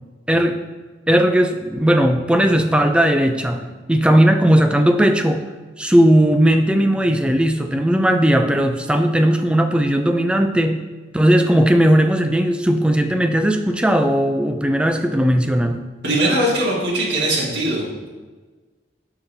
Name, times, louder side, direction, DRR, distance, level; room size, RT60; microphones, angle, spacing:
voice 1, 0.3-0.6 1.1-5.4 5.8-10.8 11.1-15.9, right 1 dB, 5° right, 6 dB, 0.3 m, -17 dB
voice 2, 16.0-17.9, right 1 dB, 60° right, -6 dB, 1.8 m, -20 dB
11.5 x 3.9 x 2.7 m, 1.3 s
head